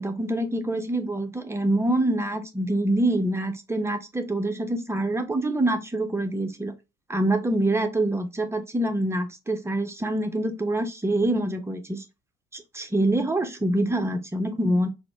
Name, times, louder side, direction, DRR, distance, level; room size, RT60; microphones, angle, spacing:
voice 1, 0.0-6.7 7.1-12.0 12.5-14.9, right 1 dB, 10° right, 0.6 m, -25 dB
4.0 x 2.1 x 2.8 m
figure-of-eight pair, 55°, 31 cm